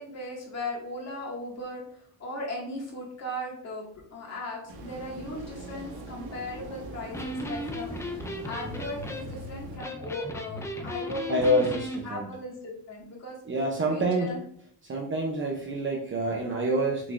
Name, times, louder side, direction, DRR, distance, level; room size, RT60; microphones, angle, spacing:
voice 1, 0.0-3.8 4.1-11.4 11.7-13.4 13.9-14.4, left 1 dB, 35° left, -3 dB, 2.1 m, -38 dB
sound 1, 4.7-9.8, right 2 dB, 55° right, 1.5 m, -42 dB
Electric guitar, 7.0-12.0, left 1 dB, 5° left, 0.3 m, -36 dB
voice 2, 11.3-12.3 13.5-14.3 14.8-17.1, right 1 dB, 25° right, -1 dB, 0.7 m, -27 dB
6.4 x 5.7 x 2.6 m, 0.64 s
cardioid pair, 165°, 47 cm